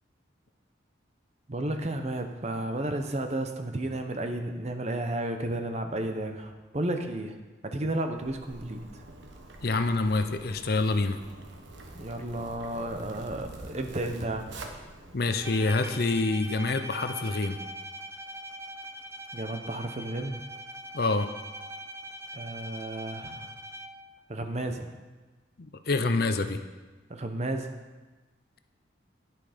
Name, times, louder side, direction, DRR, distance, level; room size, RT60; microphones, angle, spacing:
voice 1, 1.5-7.3 7.6-8.8 11.9-14.5 19.3-20.4 22.3-23.5 24.3-24.9 27.1-27.7, right 1 dB, 35° right, 6 dB, 0.8 m, -32 dB
Zipper (clothing), 8.2-15.7, right 2 dB, 70° right, 1.2 m, -46 dB
voice 2, 9.6-11.2 15.1-17.6 20.9-21.3 25.6-26.6, left 3 dB, 50° left, 8 dB, 0.6 m, -26 dB
Bowed string instrument, 15.4-24.2, right 1 dB, 15° right, 0.4 m, -42 dB
10.5 x 9.2 x 5.1 m, 1.2 s
head